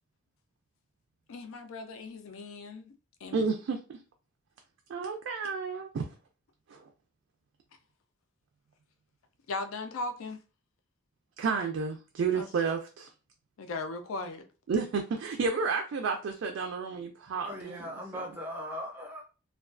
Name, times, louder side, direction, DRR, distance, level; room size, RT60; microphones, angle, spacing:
voice 1, 1.3-2.9 3.2-3.5 9.5-10.4 12.3-12.5 13.6-14.5, left 3 dB, 90° left, 0.4 m, -38 dB
voice 2, 3.3-4.0 4.9-6.1 6.7-6.8 11.4-13.1 14.7-18.4, right 5 dB, 75° right, 0.3 m, -31 dB
voice 3, 17.4-19.2, equal, 10° right, 0.5 m, -39 dB
2.3 x 2.2 x 2.4 m
head